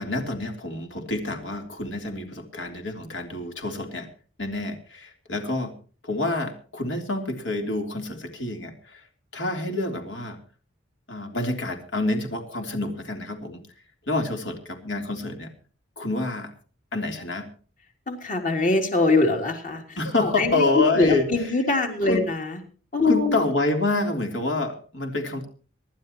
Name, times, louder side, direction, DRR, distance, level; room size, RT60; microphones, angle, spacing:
voice 1, 0.0-4.1 4.4-5.7 6.0-9.0 9.3-10.4 11.1-13.6 14.1-15.5 16.0-16.5 16.9-17.5 20.0-21.2 22.1-22.2 23.0-25.5, left 2 dB, 70° left, 3 dB, 3.3 m, -27 dB
voice 2, 18.1-22.6 22.9-23.4, left 3 dB, 45° left, 4 dB, 3.3 m, -23 dB
25.5 x 12.0 x 3.0 m, 0.40 s
head